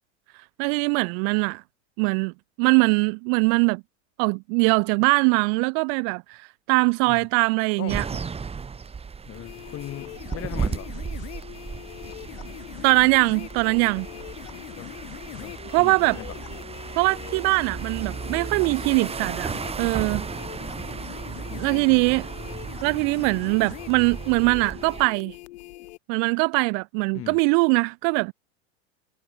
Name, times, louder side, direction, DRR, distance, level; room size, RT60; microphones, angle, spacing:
voice 1, 0.6-1.6 2.0-2.3 2.6-3.8 4.2-8.1 12.8-14.1 15.7-16.2 17.0-20.3 21.6-22.3 22.8-25.4 26.1-28.3, right 40 dB or more, 50° right, 0.5 m, -22 dB
sound 1, 7.9-25.1, right 5 dB, 15° right, 1.8 m, -35 dB
voice 2, 9.2-10.9 14.8-14.9 15.3-16.4 21.5-22.2 27.1-27.4, left 13 dB, 40° left, 6.4 m, -39 dB
sound 2, 9.3-26.0, left 19 dB, 75° left, 2.2 m, -42 dB
hypercardioid pair, 110°, 35 cm